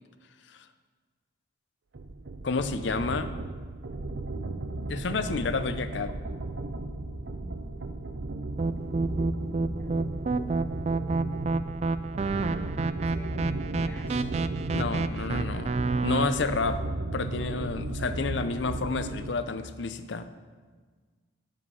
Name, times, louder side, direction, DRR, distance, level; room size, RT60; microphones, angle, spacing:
sound 1, 1.9-19.4, right 2 dB, 75° right, 0.7 m, -35 dB
voice 1, 2.4-3.3 4.9-6.1 14.7-15.7 16.0-16.8 17.1-20.3, left 4 dB, 70° left, 11 dB, 0.6 m, -30 dB
voice 2, 7.2-7.6 9.5-10.5 12.4-14.3, right 1 dB, 10° left, 2 dB, 1.0 m, -49 dB
sound 2, 8.6-16.3, right 3 dB, 35° right, 0.3 m, -29 dB
10.0 x 7.7 x 5.5 m, 1.5 s
head